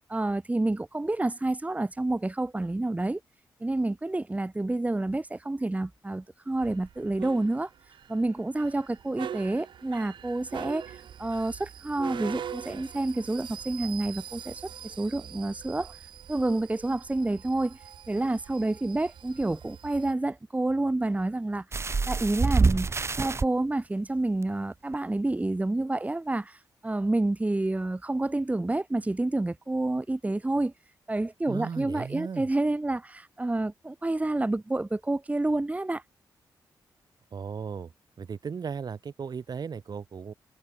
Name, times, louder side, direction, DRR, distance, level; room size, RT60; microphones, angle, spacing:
voice 1, 0.1-3.2 3.6-7.7 8.1-15.9 16.3-17.8 18.1-21.6 22.1-22.9 23.2-30.7 31.1-36.0, right 2 dB, 15° right, 1.6 m, -29 dB
sound 1, 6.6-20.1, right 9 dB, 80° right, 3.7 m, -43 dB
sound 2, 21.7-23.5 24.4-24.5 24.9-25.0, right 4 dB, 35° right, 0.7 m, -25 dB
voice 2, 31.5-32.5 37.3-37.9 38.2-40.3, right 6 dB, 55° right, 2.5 m, -36 dB
cardioid pair, 70°, 8 cm